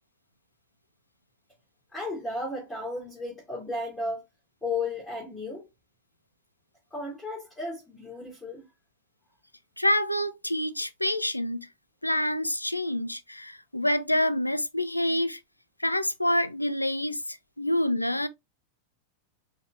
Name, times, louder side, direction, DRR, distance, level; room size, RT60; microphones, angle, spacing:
voice 1, 1.9-4.2 4.6-5.7 6.9-8.6, left 2 dB, 5° left, 2.9 m, -34 dB
voice 2, 9.8-11.7 12.0-15.4 15.8-18.3, left 1 dB, 85° left, 0.4 m, -27 dB
5.6 x 3.4 x 2.6 m
figure-of-eight pair, 90°, 0 cm